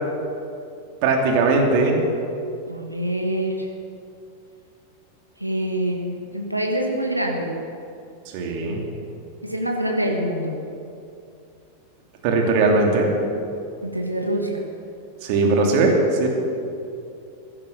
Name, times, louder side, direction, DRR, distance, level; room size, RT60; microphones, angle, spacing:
voice 1, 1.0-2.0 8.3-8.8 12.2-13.1 15.2-15.9 16.2-16.3, right 3 dB, 45° right, 1 dB, 2.8 m, -19 dB
voice 2, 2.7-3.7 5.4-7.6 9.4-10.6 13.8-14.6, right 1 dB, 85° right, 1 dB, 1.7 m, -25 dB
16.5 x 10.5 x 6.7 m, 2.6 s
figure-of-eight pair, 90°, 0 cm